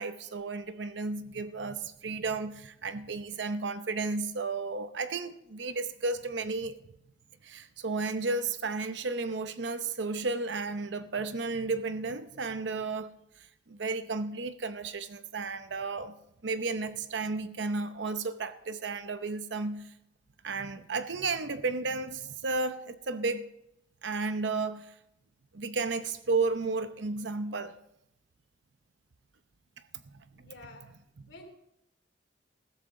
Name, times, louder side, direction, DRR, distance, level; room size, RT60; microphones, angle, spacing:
voice 1, 0.0-6.8 7.4-13.1 13.7-16.2 16.4-19.9 20.4-23.5 24.0-24.9 25.5-27.7 30.0-30.1, right 3 dB, 75° right, 0.7 m, -33 dB
voice 2, 30.3-30.9 31.3-31.5, left 2 dB, 75° left, 2.9 m, -49 dB
15.0 x 14.0 x 3.7 m
head